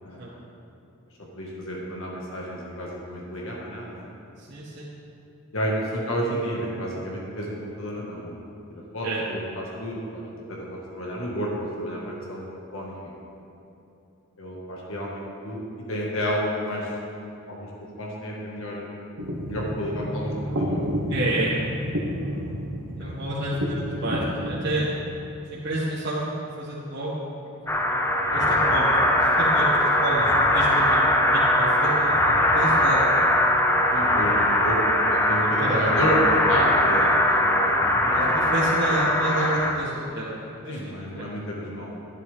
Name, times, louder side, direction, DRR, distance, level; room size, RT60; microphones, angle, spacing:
voice 1, 0.0-0.3 1.3-4.1 5.5-8.4 8.9-10.2 10.5-11.5 11.8-12.5 12.7-13.0 14.4-16.9 17.5-17.7 18.0-18.9 19.5-20.9 23.0-23.5 33.9-34.8 35.1-38.7 40.6-41.9, equal, 70° left, -3 dB, 1.8 m, -31 dB
voice 2, 4.4-4.9 9.0-9.2 21.1-21.6 23.0-24.9 25.5-27.4 27.9-28.9 29.2-31.1 31.3-33.1 33.9-34.2 35.6-35.8 38.1-41.3, right 1 dB, 55° right, -10 dB, 1.9 m, -29 dB
sound 1, 19.2-25.1, equal, 90° right, 1.5 m, -30 dB
sound 2, 27.7-39.7, left 1 dB, 10° left, 0.7 m, -21 dB
11.5 x 11.0 x 3.6 m, 2.9 s
head